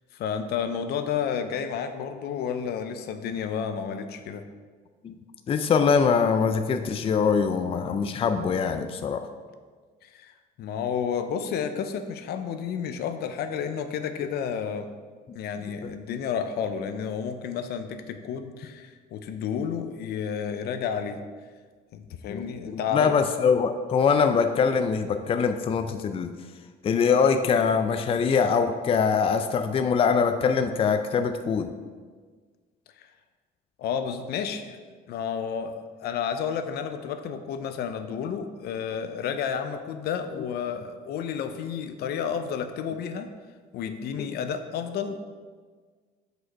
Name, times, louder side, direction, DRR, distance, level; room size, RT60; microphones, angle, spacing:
voice 1, 0.1-4.4 10.0-14.9 15.3-21.2 21.9-23.1 33.0-33.1 33.8-34.8 35.1-43.3 43.7-45.2, left 7 dB, 70° left, 8 dB, 0.6 m, -31 dB
voice 2, 5.5-9.3 15.8-15.9 22.3-26.3 26.8-31.7, left 6 dB, 35° left, 7 dB, 0.4 m, -23 dB
6.2 x 5.1 x 4.6 m, 1.5 s
cardioid pair, 110°, 17 cm